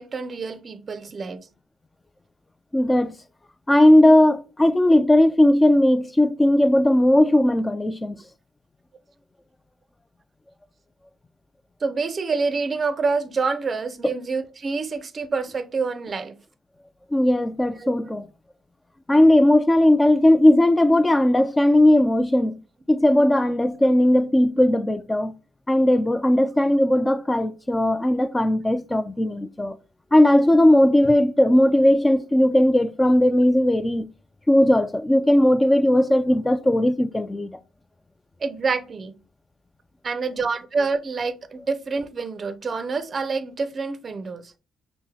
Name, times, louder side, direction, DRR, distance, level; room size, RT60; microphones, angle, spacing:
voice 1, 0.0-1.5 11.8-16.4 17.8-17.9 38.4-39.1 40.0-44.5, right 4 dB, 40° right, 0.5 m, -27 dB
voice 2, 2.7-3.1 3.7-8.2 17.1-18.3 19.1-22.5 22.9-25.3 25.7-29.8 30.1-34.1 34.5-37.6, left 1 dB, 15° left, 0.3 m, -18 dB
5.6 x 2.0 x 2.8 m
cardioid pair, 90°, 0 cm